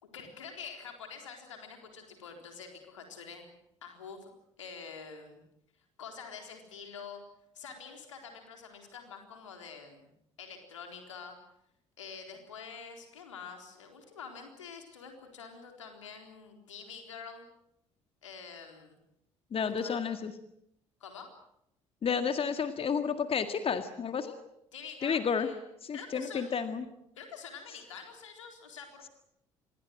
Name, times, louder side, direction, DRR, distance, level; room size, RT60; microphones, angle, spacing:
voice 1, 0.0-3.5 3.8-4.3 4.6-5.4 6.0-7.2 7.5-10.1 10.4-11.4 12.0-17.5 18.2-19.0 19.8-20.0 21.0-21.3 24.7-25.6 25.9-26.6 27.2-29.1, left 6 dB, 80° left, 4 dB, 4.0 m, -46 dB
voice 2, 19.5-20.3 22.0-24.4 25.0-25.5 25.8-26.8, left 6 dB, 35° left, 8 dB, 1.9 m, -31 dB
26.5 x 21.5 x 7.7 m, 0.78 s
figure-of-eight pair, 50°, 16 cm